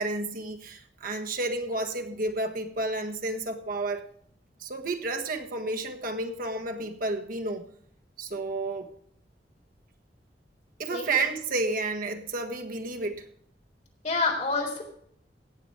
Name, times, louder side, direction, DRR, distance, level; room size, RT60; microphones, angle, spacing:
voice 1, 0.0-4.0 4.6-7.6 8.2-8.9 10.8-13.3, right 2 dB, 55° right, 4 dB, 1.4 m, -31 dB
voice 2, 10.9-11.2 14.0-14.8, left 3 dB, 45° left, 1 dB, 3.7 m, -28 dB
17.0 x 7.0 x 4.8 m, 0.65 s
head